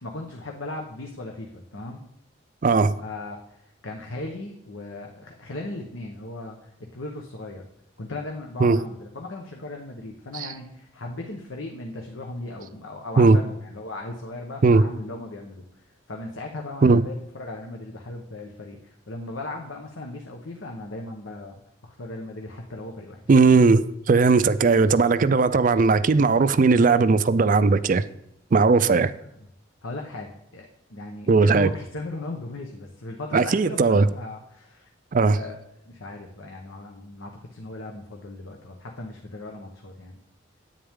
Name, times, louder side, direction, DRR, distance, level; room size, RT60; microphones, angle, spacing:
voice 1, 0.0-2.0 3.0-7.6 8.0-23.2 28.7-29.0 29.8-34.9 35.3-35.6 35.8-40.2, left 2 dB, 85° left, 1.1 m, -37 dB
voice 2, 2.6-3.0 8.6-8.8 10.3-10.5 13.2-13.4 14.6-14.8 16.8-17.0 23.3-28.0 28.5-29.1 31.3-31.7 33.3-34.1 35.1-35.4, right 4 dB, 40° right, 0.4 m, -18 dB
10.0 x 8.8 x 3.7 m
head